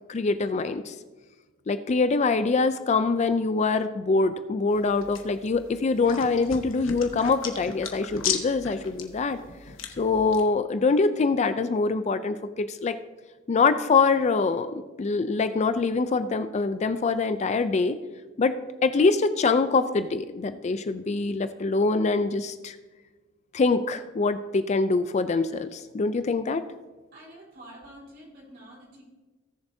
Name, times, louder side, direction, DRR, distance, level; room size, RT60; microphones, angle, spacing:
voice 1, 0.1-0.9 1.7-9.4 10.0-13.0 13.5-18.0 18.4-18.6 18.8-22.8 23.5-26.6, left 4 dB, 35° left, 11 dB, 0.4 m, -24 dB
sound 1, 4.7-10.4, left 7 dB, 70° left, 1.1 m, -36 dB
voice 2, 27.1-29.0, right 1 dB, 50° right, -3 dB, 3.7 m, -47 dB
18.0 x 7.0 x 2.7 m, 1.3 s
head